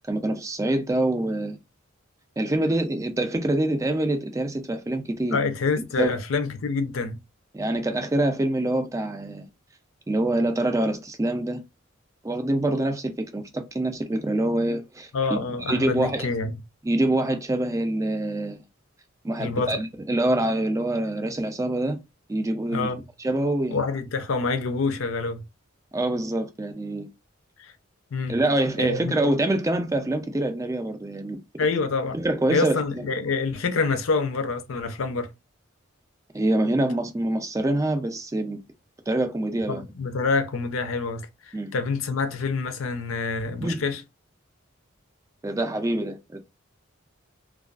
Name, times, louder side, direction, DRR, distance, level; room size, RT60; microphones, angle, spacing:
voice 1, 0.1-1.6 2.4-5.4 6.0-6.1 7.5-9.5 10.1-11.6 12.2-15.4 15.7-16.3 16.8-18.6 19.2-22.0 22.3-22.9 23.2-23.8 25.9-27.1 28.3-31.4 32.1-33.1 36.3-38.6 39.1-39.8 41.5-41.7 43.6-43.8 45.4-46.4, right 1 dB, 15° right, 0.3 m, -25 dB
voice 2, 5.3-7.2 15.1-16.5 19.4-19.8 22.7-23.1 23.7-25.4 27.6-27.7 28.1-28.4 28.8-29.1 31.6-32.2 32.5-35.3 39.7-44.0, left 4 dB, 75° left, 0.5 m, -27 dB
2.3 x 2.3 x 2.3 m
head